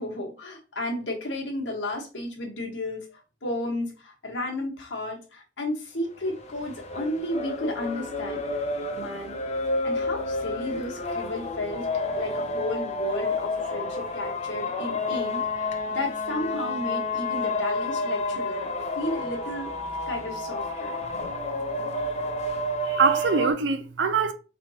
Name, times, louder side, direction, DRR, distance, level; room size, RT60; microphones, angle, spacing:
voice 1, 0.0-8.4 8.9-9.3 9.8-11.9 12.2-19.7 20.1-20.9, left 1 dB, 85° left, 1.4 m, -33 dB
sound 1, 6.2-23.5, left 2 dB, 40° left, 0.7 m, -30 dB
voice 2, 22.8-24.3, right 5 dB, 75° right, 0.6 m, -24 dB
4.4 x 3.3 x 2.8 m
head